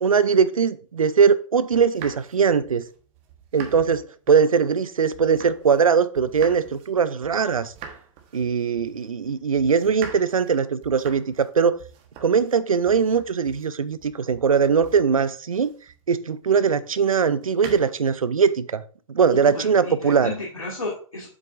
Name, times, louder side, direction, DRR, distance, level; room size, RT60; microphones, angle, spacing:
voice 1, 0.0-2.8 3.5-7.7 8.3-11.8 12.2-15.7 16.1-18.8 19.1-20.3, right 6 dB, 80° right, 0.6 m, -21 dB
sound 1, 1.7-5.9 6.1-16.1 17.1-18.2, right 7 dB, 35° right, 1.2 m, -44 dB
voice 2, 19.4-21.4, left 3 dB, 90° left, 1.7 m, -33 dB
7.3 x 6.4 x 2.5 m
figure-of-eight pair, 110°, 17 cm